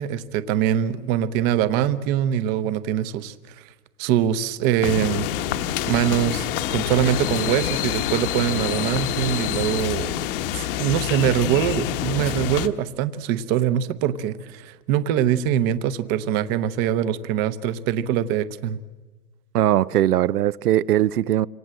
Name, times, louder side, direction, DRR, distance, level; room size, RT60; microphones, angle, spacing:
voice 1, 0.0-3.6 4.0-5.3 5.9-10.1 10.5-18.8, right 10 dB, 20° right, 0.8 m, -23 dB
sound 1, 4.8-12.7, left 11 dB, 35° left, 1.3 m, -26 dB
voice 2, 19.5-21.5, right 12 dB, 85° right, 0.8 m, -20 dB
26.5 x 25.5 x 7.7 m
hypercardioid pair, 155°, 45 cm